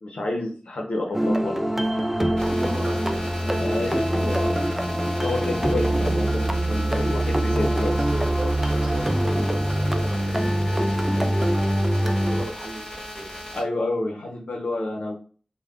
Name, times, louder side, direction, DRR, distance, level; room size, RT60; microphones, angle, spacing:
voice 1, 0.0-1.6 3.6-4.5 5.0-7.9 13.5-15.1, left 2 dB, 85° left, 0 dB, 0.6 m, -29 dB
sound 1, 1.1-12.5, right 1 dB, 10° right, 0.3 m, -23 dB
sound 2, 2.4-13.6, equal, 30° left, 1.4 m, -37 dB
voice 2, 2.4-4.4 7.8-13.4, right 1 dB, 50° right, 0 dB, 0.8 m, -37 dB
3.3 x 2.1 x 2.3 m, 0.40 s
cardioid pair, 40°, 2 cm